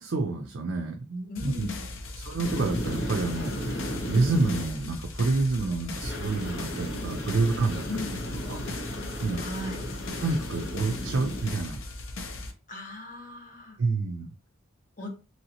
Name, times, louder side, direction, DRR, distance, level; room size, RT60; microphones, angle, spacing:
voice 1, 0.0-1.7 2.2-7.8 8.5-8.6 9.2-9.4 10.2-11.8 13.8-14.3, right 3 dB, 60° right, 2 dB, 0.4 m, -28 dB
sound 1, 1.3-12.5, left 2 dB, 70° left, 0.6 m, -38 dB
voice 2, 1.3-1.9 7.9-8.2 9.3-9.9 12.7-13.8 15.0-15.1, left 2 dB, 40° left, 1 dB, 0.8 m, -38 dB
sound 2, 2.4-4.7 6.0-11.6, equal, 55° left, 1.1 m, -35 dB
3.1 x 2.8 x 2.8 m, 0.33 s
head